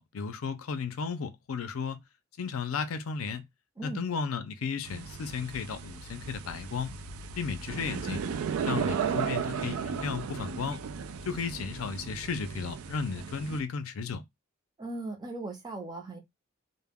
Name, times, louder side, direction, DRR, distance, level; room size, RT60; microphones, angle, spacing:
voice 1, 0.0-2.0 2.4-3.4 3.8-6.9 7.3-8.2 8.7-10.8 11.3-14.2, left 5 dB, 80° left, 0.5 m, -34 dB
sound 1, 4.8-13.6, right 6 dB, 85° right, 0.3 m, -35 dB
voice 2, 14.8-16.2, right 2 dB, 20° right, 0.6 m, -38 dB
2.2 x 2.1 x 3.4 m
head